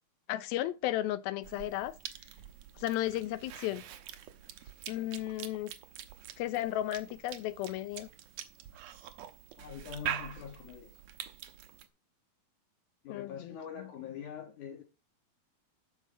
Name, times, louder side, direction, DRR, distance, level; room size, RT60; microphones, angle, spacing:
voice 1, 0.3-1.9 2.8-3.8 4.9-5.7 6.4-8.1 13.1-13.9, left 14 dB, 85° left, 2.6 m, -34 dB
Cough / Chewing mastication, 1.4-11.9, right 10 dB, 75° right, 1.5 m, -45 dB
voice 2, 9.6-10.9 13.0-14.8, left 8 dB, 60° left, 2.9 m, -44 dB
12.5 x 5.0 x 5.0 m
omnidirectional pair, 4.2 m